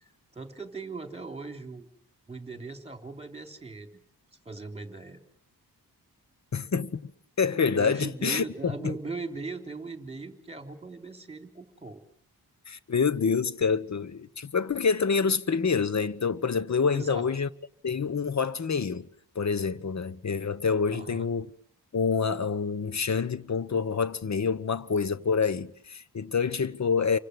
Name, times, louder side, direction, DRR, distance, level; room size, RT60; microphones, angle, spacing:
voice 1, 0.0-1.9 2.3-4.0 4.4-5.2 7.7-12.0 16.9-17.3 20.9-21.3, right 3 dB, 15° right, 3.4 m, -39 dB
voice 2, 6.5-7.1 7.4-8.9 12.7-17.5 17.8-19.1 19.3-21.5 21.9-27.2, left 5 dB, 45° left, 1.2 m, -27 dB
29.0 x 25.0 x 8.0 m
wide cardioid pair, 125°, 38 cm